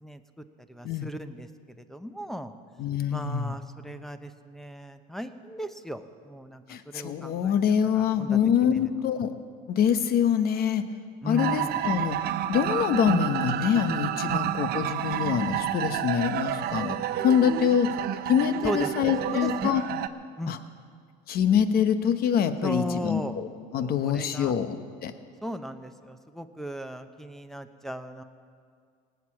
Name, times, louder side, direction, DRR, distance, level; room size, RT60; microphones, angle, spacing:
voice 1, 0.0-1.5 1.8-2.5 3.1-8.8 11.2-11.8 14.3-14.4 18.6-19.7 20.4-20.6 22.6-23.4 23.7-24.5 25.4-28.2, equal, ahead, 10 dB, 0.8 m, -36 dB
voice 2, 2.8-3.5 6.7-9.3 9.7-10.8 11.2-12.2 12.5-17.9 18.3-19.8 20.5-20.6 21.3-23.5 23.7-24.8 25.0-25.1, left 8 dB, 50° left, 10 dB, 1.0 m, -25 dB
sound 1, 11.4-20.1, right 12 dB, 50° right, 0.7 m, -30 dB
18.5 x 8.3 x 7.4 m, 2.1 s
supercardioid pair, 100°, 20 cm